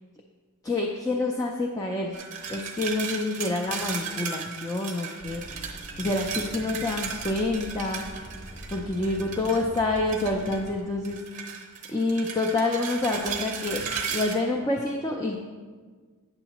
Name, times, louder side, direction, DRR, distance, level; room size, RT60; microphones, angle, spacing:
voice 1, 0.6-2.2 2.5-8.2 8.7-11.4 11.9-13.8 14.1-15.4, left 2 dB, 15° left, 0 dB, 0.4 m, -28 dB
sound 1, 2.1-10.7 11.0-14.3, right 6 dB, 35° right, 0.7 m, -36 dB
sound 2, 5.2-10.8, right 1 dB, 40° left, 0.9 m, -44 dB
8.8 x 7.2 x 2.9 m, 1.5 s
head